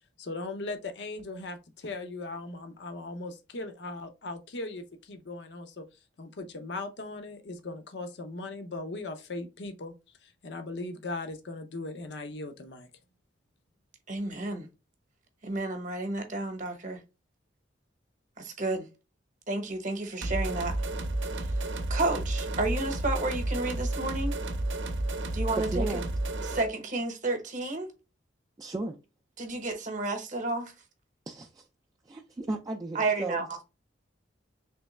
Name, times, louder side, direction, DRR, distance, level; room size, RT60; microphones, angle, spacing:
voice 1, 0.2-5.8 6.2-9.9 10.2-12.9, left 2 dB, 65° left, 0.6 m, -38 dB
voice 2, 14.1-14.7 15.4-17.0 18.4-18.9 19.5-20.7 21.4-24.4 25.3-26.0 26.4-27.9 29.4-30.7 32.9-33.6, right 2 dB, 40° right, 0.8 m, -31 dB
sound 1, 20.2-26.7, right 1 dB, 80° right, 0.6 m, -31 dB
voice 3, 25.7-26.1 28.6-29.0 31.3-31.6 32.1-33.4, right 2 dB, 20° right, 0.3 m, -35 dB
3.3 x 3.1 x 3.1 m
head